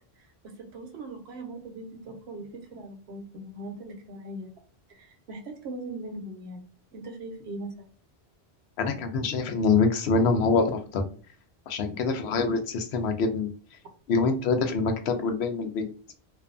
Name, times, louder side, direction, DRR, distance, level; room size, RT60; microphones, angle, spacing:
voice 1, 0.4-4.5 4.9-7.9, right 2 dB, 80° right, 4 dB, 1.0 m, -40 dB
voice 2, 8.8-11.1 11.7-13.5 14.1-15.9, left 4 dB, 80° left, 6 dB, 0.9 m, -25 dB
2.6 x 2.3 x 2.4 m, 0.41 s
omnidirectional pair, 1.1 m